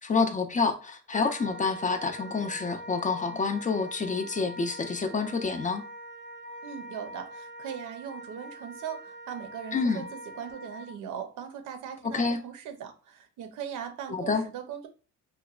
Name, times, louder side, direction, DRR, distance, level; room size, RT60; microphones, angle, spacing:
voice 1, 0.0-5.8 9.7-10.0 12.1-12.4 14.1-14.4, left 4 dB, 25° left, 0.3 m, -28 dB
Wind instrument woodwind instrument, 1.1-11.0, right 1 dB, 40° right, 0.5 m, -43 dB
voice 2, 6.6-14.9, right 8 dB, 80° right, 0.6 m, -39 dB
2.9 x 2.1 x 2.3 m
cardioid pair, 90°, 30 cm